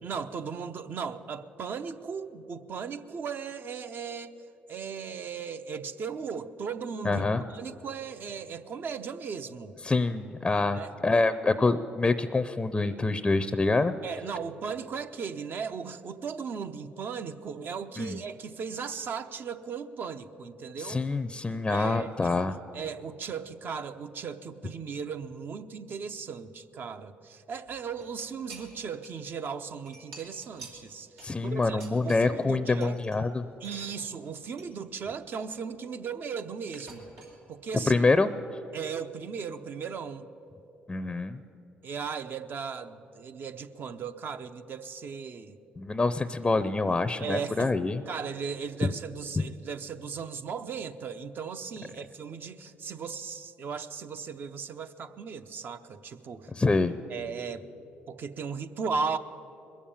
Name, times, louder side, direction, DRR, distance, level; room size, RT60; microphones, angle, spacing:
voice 1, 0.0-4.3 4.7-7.2 7.5-9.8 10.7-11.0 14.0-21.0 21.7-22.5 22.7-33.0 33.6-37.1 37.5-37.9 38.7-40.2 41.8-45.6 47.2-47.7 48.1-56.5 57.1-57.6 58.1-59.2, right 6 dB, 55° right, 9 dB, 0.7 m, -37 dB
voice 2, 7.0-7.4 9.8-13.9 18.0-18.2 20.8-22.5 31.2-33.4 37.9-38.3 40.9-41.4 45.8-48.0 56.5-56.9, left 3 dB, 20° left, 12 dB, 0.5 m, -26 dB
sound 1, 27.7-29.3 29.6-32.5 32.8-33.2 33.6-34.7 35.1-36.3 36.7-37.4, right 3 dB, 85° right, 2.9 m, -51 dB
21.0 x 7.3 x 8.6 m, 3.0 s
supercardioid pair, 75°, 4 cm